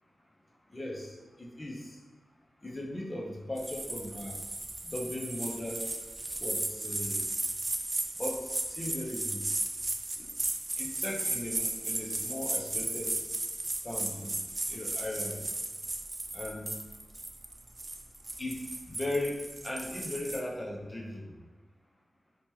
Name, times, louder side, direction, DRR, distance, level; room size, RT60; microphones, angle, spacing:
voice 1, 0.7-1.1 1.4-1.8 2.6-4.4 4.8-5.8 6.4-7.2 8.2-8.4 8.7-9.4 10.2-10.3 10.8-13.2 13.8-14.4 14.7-15.4 16.3-16.7 18.4-18.6 18.9-19.3 19.6-21.2, left 1 dB, 30° left, -1 dB, 0.6 m, -37 dB
sound 1, 3.6-20.4, right 2 dB, 35° right, 0.3 m, -35 dB
2.8 x 2.2 x 3.1 m, 1.3 s
cardioid pair, 50°, 0 cm